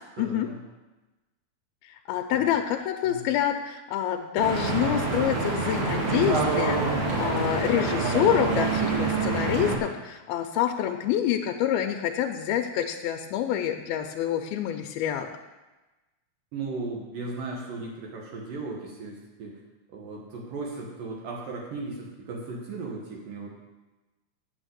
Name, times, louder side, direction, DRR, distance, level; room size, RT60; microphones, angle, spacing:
voice 1, 0.2-0.6 2.3-2.5 3.0-3.2 9.6-9.8 16.5-19.6 19.9-23.5, right 3 dB, 65° right, -2 dB, 2.9 m, -36 dB
voice 2, 2.1-15.3, left 10 dB, 85° left, 4 dB, 2.5 m, -27 dB
Stream / Boat Water vehicle, 4.4-9.8, right 3 dB, 50° right, 2.8 m, -26 dB
8.9 x 7.2 x 7.9 m, 1.1 s
omnidirectional pair, 4.4 m